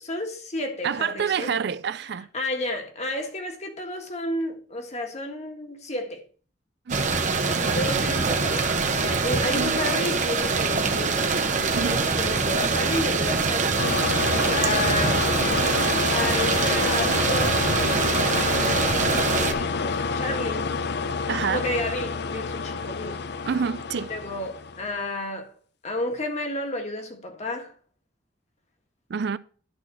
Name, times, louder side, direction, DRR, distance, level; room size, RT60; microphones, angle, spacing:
voice 1, 0.0-1.5 2.3-6.2 7.6-11.3 11.7-13.9 14.5-15.2 16.1-18.7 19.4-20.7 21.5-23.2 24.1-25.5 25.8-27.7, left 1 dB, 40° left, 1.6 m, -31 dB
voice 2, 0.8-2.3 6.9-7.1 9.5-9.8 11.7-12.0 21.3-21.7 23.5-24.1 29.1-29.4, right 6 dB, 65° right, 0.4 m, -27 dB
sound 1, 6.9-19.5, right 4 dB, 40° right, 1.0 m, -24 dB
sound 2, 13.8-25.0, left 4 dB, 65° left, 0.6 m, -28 dB
10.5 x 4.2 x 6.4 m
head